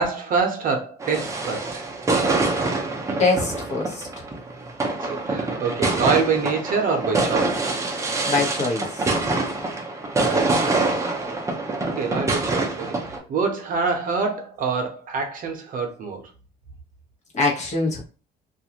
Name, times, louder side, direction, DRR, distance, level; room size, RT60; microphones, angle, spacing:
voice 1, 0.0-1.8 4.8-7.8 10.1-11.1 11.9-16.2, right 5 dB, 55° right, 0.7 m, -26 dB
sound 1, 1.0-13.2, right 3 dB, 20° right, 0.6 m, -25 dB
voice 2, 3.2-4.1 8.3-9.2 17.3-18.0, left 3 dB, 40° left, 1.0 m, -23 dB
2.5 x 2.4 x 2.8 m
cardioid pair, 110°, 17 cm